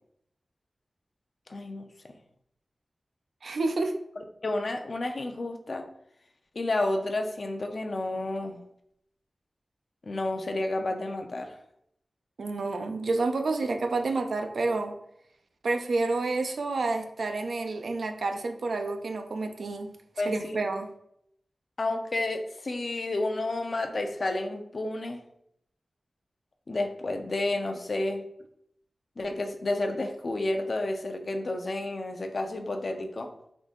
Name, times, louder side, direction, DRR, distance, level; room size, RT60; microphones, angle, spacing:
voice 1, 1.5-1.9 4.4-5.9 6.5-8.6 10.0-11.6 20.2-20.6 21.8-25.2 26.7-28.2 29.2-33.3, left 2 dB, 60° left, 4 dB, 0.5 m, -30 dB
voice 2, 3.4-4.0 12.4-14.9 15.6-19.9 20.3-20.9, right 3 dB, 85° right, 6 dB, 0.4 m, -29 dB
3.7 x 2.6 x 3.7 m, 0.74 s
wide cardioid pair, 80°, 0 cm